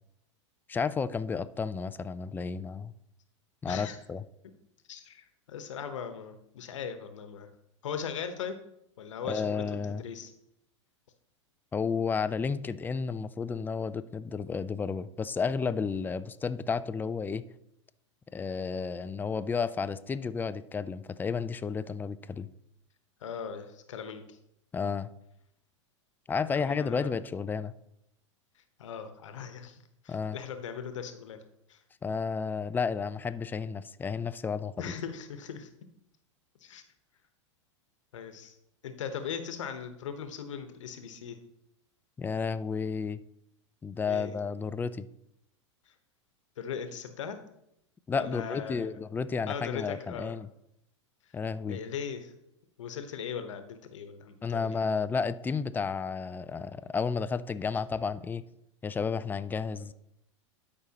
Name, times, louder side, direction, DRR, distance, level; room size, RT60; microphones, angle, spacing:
voice 1, 0.7-2.9 3.6-4.2 9.2-10.0 11.7-17.4 18.3-22.5 24.7-25.1 26.3-27.7 30.1-30.4 32.0-34.9 42.2-43.2 43.8-45.1 48.1-50.5 51.3-51.8 54.4-58.4 58.8-59.9, left 5 dB, 10° left, 13 dB, 0.4 m, -32 dB
voice 2, 3.7-4.0 4.9-7.5 7.8-8.6 9.0-10.3 23.2-24.4 26.5-27.1 28.8-29.8 30.0-31.4 31.7-31.8 34.8-35.7 36.6-36.8 38.1-38.5 38.8-41.4 44.1-44.4 46.6-47.4 48.1-48.9 49.5-50.4 51.7-52.3 52.8-54.8, left 7 dB, 75° left, 8 dB, 1.1 m, -39 dB
12.5 x 5.3 x 2.9 m, 0.78 s
hypercardioid pair, 100°, 16 cm